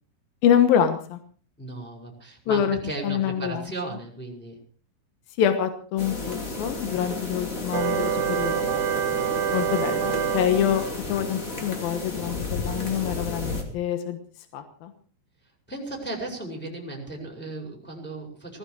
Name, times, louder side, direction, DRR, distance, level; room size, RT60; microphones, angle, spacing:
voice 1, 0.4-1.2 2.5-2.8 3.0-3.7 5.4-8.7 9.5-14.2 14.5-14.9, left 9 dB, 70° left, 8 dB, 2.3 m, -25 dB
voice 2, 1.6-4.6 15.7-18.6, right 2 dB, ahead, 1 dB, 4.5 m, -35 dB
sound 1, 6.0-13.6, left 3 dB, 30° left, 1.5 m, -33 dB
sound 2, 7.7-11.0, right 9 dB, 80° right, 2.4 m, -26 dB
17.5 x 15.5 x 4.8 m, 0.42 s
omnidirectional pair, 6.0 m